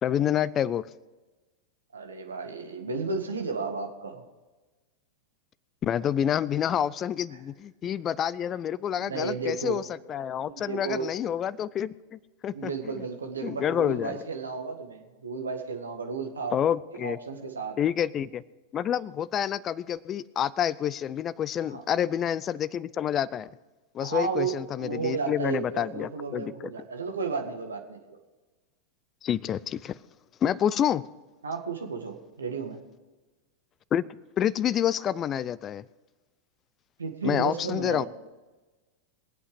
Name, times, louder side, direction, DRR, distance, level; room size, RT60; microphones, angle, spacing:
voice 1, 0.0-0.9 5.8-9.8 10.1-12.7 13.4-14.2 16.5-17.2 17.8-18.4 18.7-23.5 23.9-26.7 29.2-29.9 30.4-31.0 33.9-34.0 34.4-35.8 37.2-38.1, left 9 dB, 30° left, 21 dB, 0.5 m, -28 dB
voice 2, 1.9-4.2 9.0-9.8 10.4-11.1 12.5-16.6 17.0-17.8 21.6-21.8 24.0-28.2 31.4-32.8 37.0-38.1, right 5 dB, 70° right, 4 dB, 1.9 m, -33 dB
22.5 x 8.4 x 5.0 m, 1.2 s
figure-of-eight pair, 90°, 0 cm